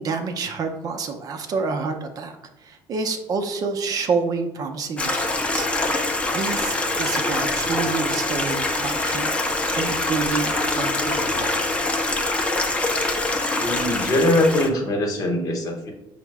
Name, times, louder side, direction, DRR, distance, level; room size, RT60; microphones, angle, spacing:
voice 1, 0.0-2.4 2.6-9.3 9.7-11.8, right 4 dB, 45° right, 5 dB, 0.5 m, -28 dB
Stream, 5.0-14.7, left 2 dB, 15° left, 0.4 m, -24 dB
voice 2, 13.6-15.9, left 1 dB, 40° left, 2 dB, 0.9 m, -22 dB
5.3 x 2.0 x 4.6 m, 0.91 s
cardioid pair, 150°, 9 cm